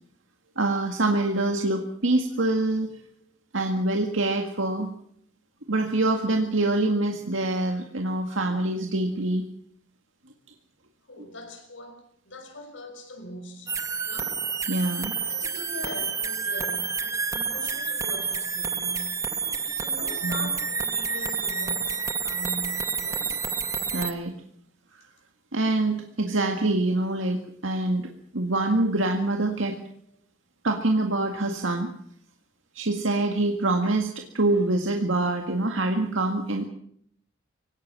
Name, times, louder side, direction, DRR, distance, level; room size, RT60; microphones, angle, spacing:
voice 1, 0.6-2.9 3.5-4.9 5.7-9.4 14.7-15.2 20.2-20.5 23.9-24.3 25.5-28.1 28.3-29.8 30.6-31.9 32.8-36.6, right 2 dB, 80° right, 3 dB, 1.9 m, -25 dB
voice 2, 11.1-13.8 14.0-14.4 15.3-19.2 19.8-23.4, left 1 dB, 75° left, 6 dB, 5.9 m, -41 dB
sound 1, 13.7-24.1, right 5 dB, 15° right, 0.9 m, -29 dB
24.5 x 18.0 x 7.6 m, 0.66 s
head